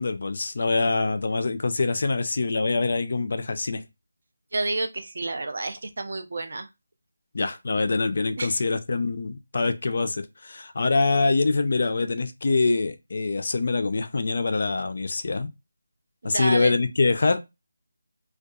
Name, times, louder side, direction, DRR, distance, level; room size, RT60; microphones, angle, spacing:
voice 1, 0.0-3.8 7.3-15.5 16.2-17.4, left 3 dB, 45° left, 0.3 m, -24 dB
voice 2, 4.5-6.7 8.4-8.6 16.2-16.7, right 2 dB, 50° right, 0.4 m, -30 dB
2.6 x 2.2 x 2.3 m
figure-of-eight pair, 175°, 0 cm